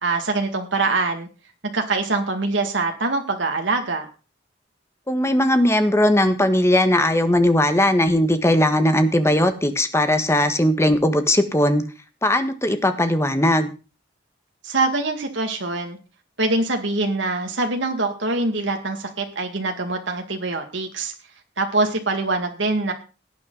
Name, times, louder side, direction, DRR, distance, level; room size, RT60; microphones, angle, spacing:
voice 1, 0.0-1.3 1.7-4.1 14.6-16.0 16.4-21.1 21.6-22.9, right 3 dB, 75° right, 3 dB, 2.1 m, -24 dB
voice 2, 5.1-11.8 12.2-13.7, left 1 dB, 15° left, 9 dB, 1.4 m, -18 dB
18.0 x 9.0 x 4.0 m, 0.34 s
head